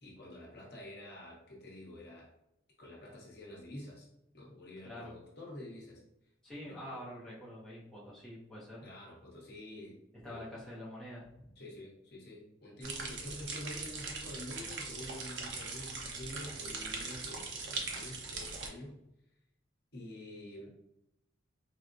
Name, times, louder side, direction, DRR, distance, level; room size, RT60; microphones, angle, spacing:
voice 1, 0.0-2.3 2.8-4.1 4.3-6.0 6.6-7.0 8.8-10.0 10.2-10.5 11.6-19.0 19.9-20.7, left 1 dB, 50° left, -3 dB, 1.0 m, -48 dB
voice 2, 6.4-8.8 10.2-11.5, left 1 dB, 5° left, -8 dB, 0.6 m, -46 dB
sound 1, 12.8-18.7, right 4 dB, 60° right, 0.5 m, -41 dB
4.4 x 2.1 x 2.5 m, 0.85 s
head